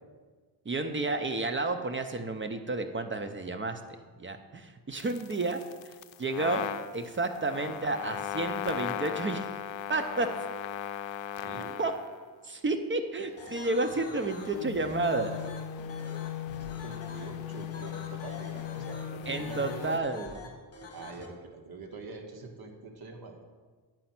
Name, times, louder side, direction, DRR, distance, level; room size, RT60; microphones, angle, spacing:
voice 1, 0.6-3.8 4.2-6.7 6.9-9.5 9.9-10.3 11.8-11.9 12.4-15.4 19.3-20.5, right 3 dB, 25° right, 8 dB, 0.6 m, -31 dB
sound 1, 5.0-12.2 13.4-20.0, left 11 dB, 70° left, 0.6 m, -38 dB
voice 2, 11.4-11.8 16.6-20.0 20.9-23.4, right 3 dB, 50° right, 3 dB, 1.4 m, -44 dB
sound 2, 13.4-21.3, left 3 dB, 30° left, 1.6 m, -46 dB
9.1 x 5.2 x 5.8 m, 1.5 s
cardioid pair, 110°, 47 cm